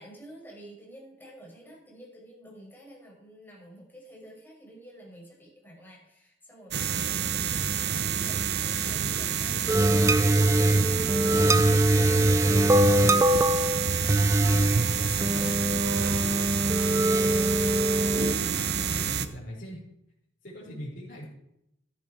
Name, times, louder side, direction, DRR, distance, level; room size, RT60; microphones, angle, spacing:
voice 1, 0.0-18.1 18.8-19.2, equal, 10° left, -3 dB, 5.7 m, -48 dB
sound 1, 6.7-19.3, right 6 dB, 60° right, 0.9 m, -28 dB
sound 2, 9.7-18.3, right 1 dB, 15° right, 0.4 m, -23 dB
voice 2, 18.8-19.8 20.4-21.2, equal, 50° left, -8 dB, 5.0 m, -40 dB
14.5 x 10.5 x 4.7 m, 0.80 s
head